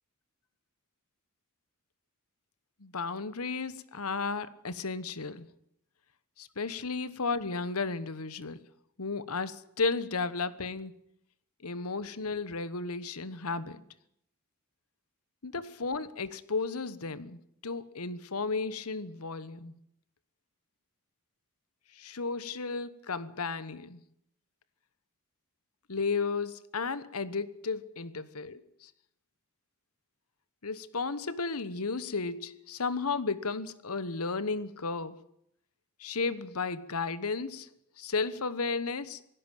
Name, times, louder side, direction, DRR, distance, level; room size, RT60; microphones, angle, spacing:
voice 1, 2.8-5.5 6.4-8.6 9.0-10.9 11.6-13.8 15.4-19.8 22.0-24.0 25.9-28.9 30.6-35.2 36.0-37.7 38.0-39.2, left 4 dB, 75° left, 1.2 m, -34 dB
18.5 x 16.5 x 9.1 m
head